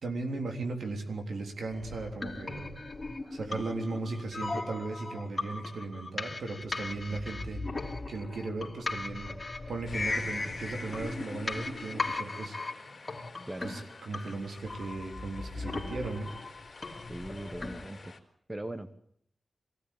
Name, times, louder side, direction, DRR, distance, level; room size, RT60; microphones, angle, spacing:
voice 1, 0.0-2.7 3.3-9.3 9.7-12.6 13.6-16.3, right 3 dB, 85° right, 3 dB, 3.6 m, -37 dB
sound 1, 1.7-17.9, left 3 dB, 30° left, 3.0 m, -38 dB
sound 2, 9.8-18.2, left 3 dB, 50° left, 3.4 m, -50 dB
voice 2, 13.5-13.8 17.1-18.1 18.5-19.0, right 1 dB, 20° right, 11 dB, 1.3 m, -40 dB
23.0 x 17.0 x 8.6 m, 0.66 s
wide cardioid pair, 85°, 0 cm